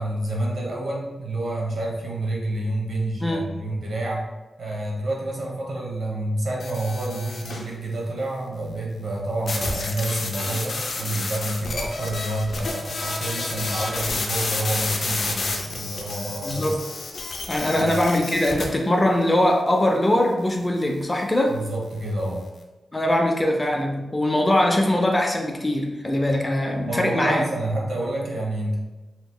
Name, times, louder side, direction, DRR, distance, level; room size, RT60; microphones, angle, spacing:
voice 1, 0.0-4.2 4.6-16.8 17.7-17.9 21.5-22.4 26.9-28.8, right 1 dB, 65° right, -2 dB, 0.9 m, -28 dB
voice 2, 3.2-3.6 16.4-16.8 17.5-21.6 22.9-27.4, left 1 dB, 20° left, 1 dB, 0.4 m, -22 dB
sound 1, 6.6-7.7 9.5-18.6, left 3 dB, 70° left, 0.5 m, -30 dB
3.4 x 2.9 x 2.3 m, 1.1 s
wide cardioid pair, 95°, 0 cm